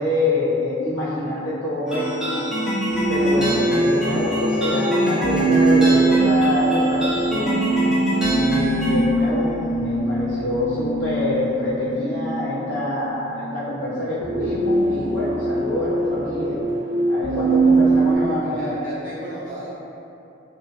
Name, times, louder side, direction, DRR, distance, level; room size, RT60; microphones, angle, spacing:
voice 1, 0.0-2.4 3.1-7.7 8.2-16.6 17.1-18.7, left 1 dB, 85° left, -9 dB, 0.8 m, -26 dB
sound 1, 1.9-9.1, equal, 5° right, 0.4 m, -25 dB
sound 2, 2.9-18.2, right 2 dB, 60° right, 0.4 m, -22 dB
voice 2, 17.2-19.8, equal, 45° right, -11 dB, 0.8 m, -35 dB
2.6 x 2.0 x 2.7 m, 2.8 s
head